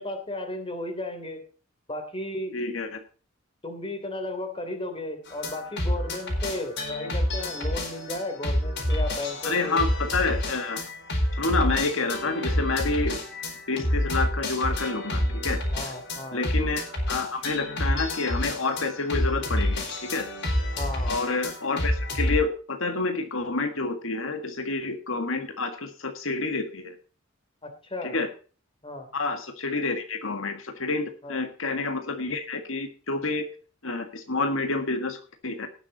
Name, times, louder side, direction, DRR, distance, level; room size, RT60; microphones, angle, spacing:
voice 1, 0.0-1.4 1.9-2.6 3.6-9.8 15.7-16.4 20.7-21.1 27.6-28.1 28.8-29.1 31.2-31.4, left 1 dB, 25° left, 6 dB, 3.1 m, -34 dB
voice 2, 2.5-3.0 9.4-10.8 11.3-13.2 13.7-15.6 16.3-20.3 21.1-26.9 28.0-28.3 29.1-33.4 33.8-35.7, left 3 dB, 80° left, 6 dB, 1.7 m, -28 dB
sound 1, 5.3-22.4, left 1 dB, 60° left, 4.6 m, -28 dB
18.0 x 7.3 x 4.0 m, 0.38 s
head